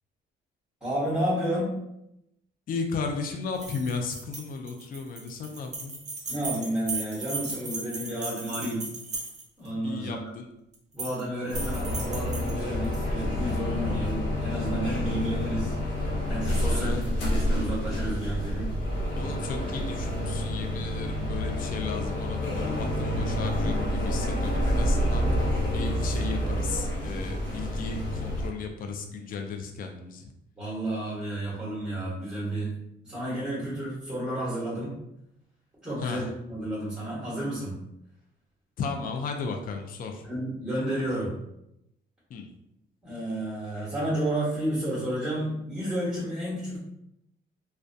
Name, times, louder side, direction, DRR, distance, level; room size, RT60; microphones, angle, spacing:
voice 1, 0.8-1.7 6.3-8.9 9.6-10.3 10.9-15.7 16.3-18.7 30.6-32.7 33.0-35.0 35.8-37.8 40.2-41.3 43.0-46.8, right 1 dB, 5° right, -9 dB, 1.1 m, -31 dB
voice 2, 2.7-6.0 9.8-10.5 16.7-17.1 19.2-25.3 25.7-30.3 36.0-36.2 38.8-40.3 42.3-42.5, left 4 dB, 45° left, 4 dB, 0.4 m, -35 dB
sound 1, 3.5-9.7 10.7-11.2 11.5-13.0, right 3 dB, 35° right, 0.7 m, -37 dB
sound 2, 11.5-28.5, equal, 75° left, 0.7 m, -28 dB
2.2 x 2.2 x 2.6 m, 0.83 s
cardioid pair, 90°, 20 cm